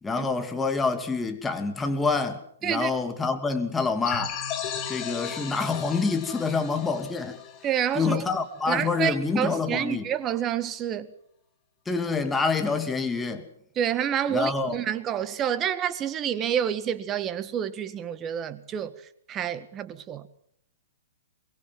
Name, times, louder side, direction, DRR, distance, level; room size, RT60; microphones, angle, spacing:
voice 1, 0.0-4.3 4.9-7.4 7.9-10.0 11.9-13.5 14.3-14.8, left 4 dB, 10° left, 2.6 m, -27 dB
sound 1, 4.0-8.5, left 8 dB, 30° left, 3.7 m, -35 dB
voice 2, 7.6-8.3 8.7-11.1 13.7-18.9 19.3-20.3, right 9 dB, 25° right, 1.6 m, -28 dB
23.5 x 22.0 x 7.6 m
figure-of-eight pair, 120°, 0 cm